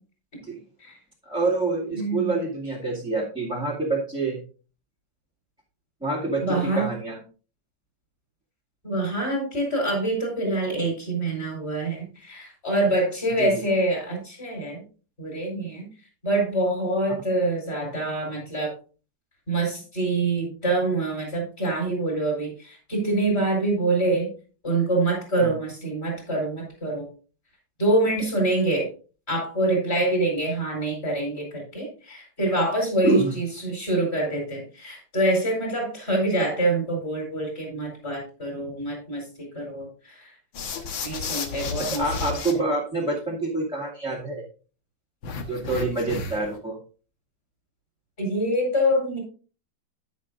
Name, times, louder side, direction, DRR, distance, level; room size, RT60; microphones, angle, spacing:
voice 1, 1.2-4.4 6.0-7.2 13.4-13.5 25.4-25.5 33.0-33.3 41.8-44.5 45.5-46.8, right 2 dB, 5° right, -6 dB, 2.0 m, -27 dB
voice 2, 1.9-2.3 6.4-6.9 8.8-14.8 15.2-15.9 16.2-18.7 19.5-24.3 24.6-27.1 27.8-28.9 29.3-40.3 41.0-42.0 42.3-42.4 48.2-49.2, right 2 dB, 30° left, 0 dB, 4.7 m, -25 dB
sound 1, 40.5-42.5 45.2-46.6, left 5 dB, 85° left, 2.0 m, -32 dB
11.0 x 9.5 x 2.6 m, 0.36 s
omnidirectional pair, 2.1 m